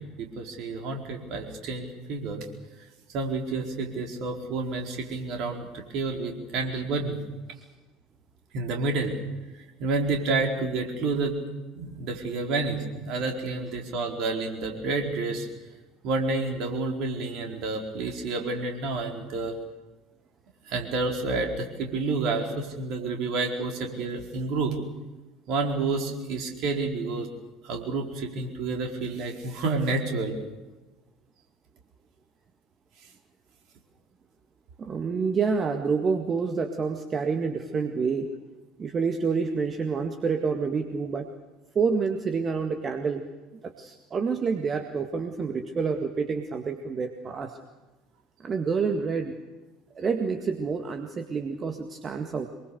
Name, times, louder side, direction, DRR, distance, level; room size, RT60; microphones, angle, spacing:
voice 1, 0.2-2.4 3.1-5.7 5.9-7.2 8.5-9.1 9.8-11.4 11.7-15.5 16.0-19.6 20.7-24.7 25.5-27.3 27.6-30.4, right 3 dB, 50° right, 2 dB, 4.5 m, -29 dB
voice 2, 34.8-38.3 38.8-41.3 41.8-43.2 43.6-47.6 48.4-49.3 50.0-52.5, right 5 dB, 30° right, 5 dB, 1.9 m, -28 dB
25.0 x 22.5 x 6.8 m, 1.2 s
figure-of-eight pair, 65°, 0 cm